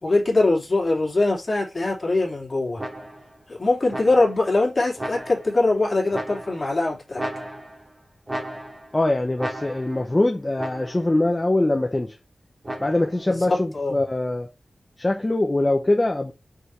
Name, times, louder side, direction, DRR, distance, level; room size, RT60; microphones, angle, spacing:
voice 1, 0.0-2.8 3.5-7.2 13.3-13.9, left 2 dB, 40° left, 3.1 m, -22 dB
sound 1, 2.8-3.4 3.9-4.5 5.0-5.6 6.1-6.8 7.2-7.9 8.3-9.0 9.4-10.1 10.6-11.2 12.6-13.3, right 1 dB, 25° right, 2.7 m, -34 dB
voice 2, 8.9-12.1 12.8-14.5 15.0-16.3, left 2 dB, 20° left, 0.9 m, -22 dB
5.9 x 5.1 x 3.3 m
wide cardioid pair, 105°, 0 cm